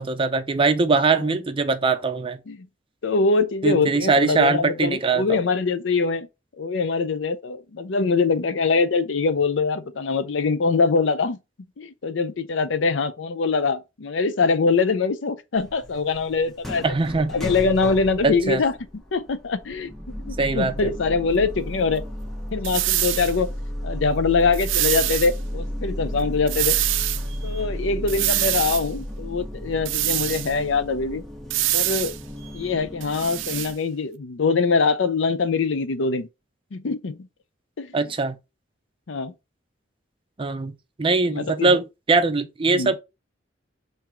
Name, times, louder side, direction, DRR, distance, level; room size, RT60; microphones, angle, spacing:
voice 1, 0.0-2.4 3.6-5.4 16.8-17.3 18.2-18.6 20.4-20.9 37.9-38.4 40.4-40.7 41.0-43.0, right 3 dB, 30° right, 0.5 m, -21 dB
voice 2, 3.0-6.3 6.6-11.4 11.8-16.8 17.3-18.7 19.1-19.9 20.2-22.0 22.5-23.5 23.8-26.8 27.4-31.2 31.7-32.1 32.5-36.3 36.7-37.2 37.8-37.9 39.1-39.3 41.2-41.8 42.7-42.9, left 4 dB, 75° left, 0.6 m, -23 dB
sound 1, 15.5-33.7, equal, ahead, 0.9 m, -33 dB
sound 2, 22.6-23.3 24.5-25.3 26.5-27.2 28.1-28.8 29.9-30.5 31.5-32.2 33.0-33.7, right 15 dB, 80° right, 0.4 m, -24 dB
3.8 x 2.7 x 4.3 m
head